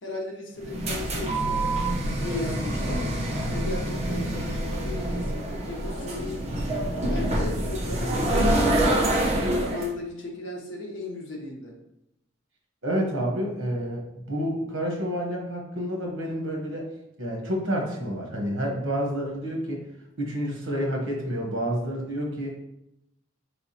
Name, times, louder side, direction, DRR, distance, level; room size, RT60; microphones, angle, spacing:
voice 1, 0.0-1.6 2.0-3.1 3.5-6.5 7.0-9.2 9.6-11.7, left 2 dB, 70° left, 0 dB, 0.9 m, -36 dB
sound 1, 0.6-9.9, right 1 dB, 35° right, 0.7 m, -26 dB
voice 2, 12.8-16.9 17.2-19.8 20.2-22.6, equal, 70° right, 0 dB, 1.1 m, -29 dB
4.5 x 3.4 x 2.8 m, 0.82 s
head